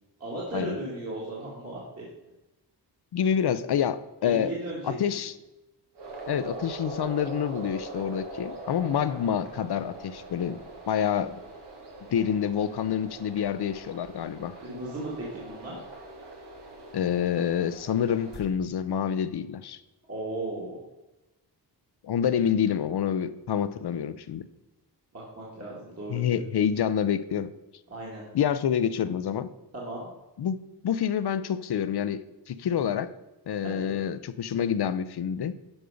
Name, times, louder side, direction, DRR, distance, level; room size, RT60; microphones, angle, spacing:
voice 1, 0.2-2.1 4.2-4.9 8.8-8.9 14.6-15.8 20.1-20.8 25.1-26.4 27.9-28.2 29.7-30.1 33.6-34.0, right 2 dB, 35° right, -6 dB, 2.3 m, -36 dB
voice 2, 3.1-4.5 4.9-5.3 6.3-10.6 10.9-11.4 12.1-14.6 16.9-19.8 22.0-24.5 26.1-27.5 28.3-29.5 30.4-30.6 30.8-33.1 33.5-35.6, left 8 dB, 70° left, 14 dB, 0.6 m, -27 dB
sound 1, 5.9-18.4, right 2 dB, 75° right, 2.1 m, -42 dB
11.5 x 5.4 x 5.1 m, 1.0 s
wide cardioid pair, 145°, 41 cm